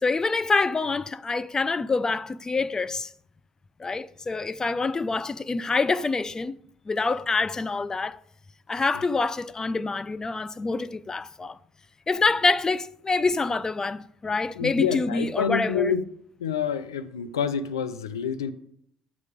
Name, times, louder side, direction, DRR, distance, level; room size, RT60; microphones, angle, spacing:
voice 1, 0.0-3.1 3.8-6.6 6.9-8.2 8.7-11.6 12.1-15.9, left 3 dB, 25° left, 0.5 m, -26 dB
voice 2, 14.6-16.1 16.4-18.5, left 7 dB, 85° left, 0.6 m, -27 dB
9.4 x 7.3 x 5.1 m
hypercardioid pair, 50°, 2 cm